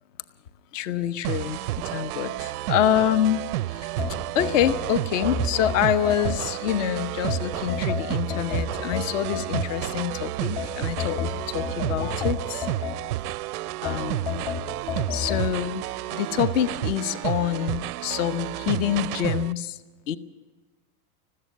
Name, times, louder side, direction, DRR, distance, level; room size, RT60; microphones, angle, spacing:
voice 1, 0.7-1.6 1.8-3.9 4.3-12.7 13.8-14.4 15.1-19.8 20.1-20.2, left 10 dB, 60° left, 13 dB, 1.0 m, -26 dB
sound 1, 1.2-19.5, right 16 dB, 85° right, 0.6 m, -31 dB
sound 2, 4.0-6.8 7.3-10.1 10.6-13.4 13.9-15.5, left 7 dB, 35° left, 1.6 m, -31 dB
21.0 x 15.0 x 9.4 m, 1.3 s
supercardioid pair, 155°, 44 cm